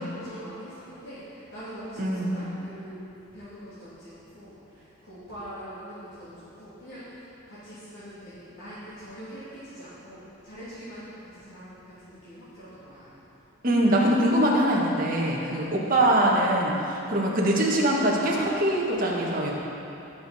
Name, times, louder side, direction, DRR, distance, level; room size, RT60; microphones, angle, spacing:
voice 1, 0.0-3.0 3.3-13.1 15.6-15.8, equal, 65° left, -14 dB, 2.9 m, -43 dB
voice 2, 2.0-2.4 13.6-19.5, right 1 dB, 40° right, -4 dB, 1.7 m, -23 dB
17.0 x 6.8 x 4.3 m, 2.9 s
head